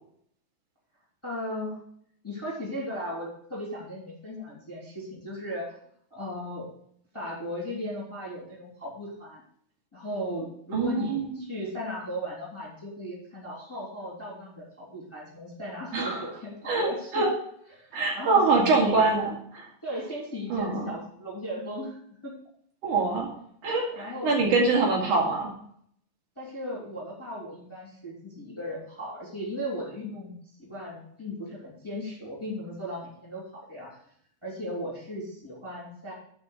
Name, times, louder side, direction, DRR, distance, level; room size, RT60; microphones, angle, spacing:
voice 1, 1.2-1.8 2.2-5.8 6.1-6.7 7.1-9.4 9.9-17.2 17.7-19.0 19.8-22.3 23.9-24.4 26.4-34.0 34.4-36.1, equal, 10° left, -5 dB, 2.6 m, -36 dB
voice 2, 10.7-11.3 15.9-16.2 16.7-17.3 17.9-19.7 20.5-20.9 22.8-23.3 23.6-25.5, right 3 dB, 60° right, -2 dB, 3.5 m, -24 dB
10.5 x 5.0 x 6.5 m, 0.66 s
omnidirectional pair, 4.0 m